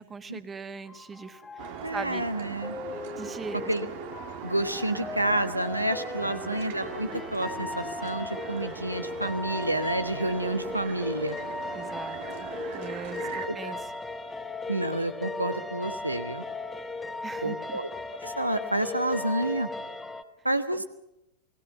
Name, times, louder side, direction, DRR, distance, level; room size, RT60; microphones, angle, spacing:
voice 1, 0.0-2.3 3.2-3.7 6.4-6.6 11.7-12.2 12.7-13.9 17.2-17.8, right 5 dB, 15° right, 12 dB, 1.4 m, -40 dB
sound 1, 0.9-20.2, left 3 dB, 15° left, 1.3 m, -37 dB
sound 2, 1.6-13.5, right 10 dB, 50° right, 1.7 m, -41 dB
voice 2, 1.8-2.8 3.7-3.9 4.4-11.4 13.4-13.8 14.7-16.4 17.4-17.9 18.2-19.7 20.4-20.8, right 1 dB, 85° right, 10 dB, 1.3 m, -29 dB
28.0 x 20.0 x 5.7 m, 0.90 s
figure-of-eight pair, 90°, 0 cm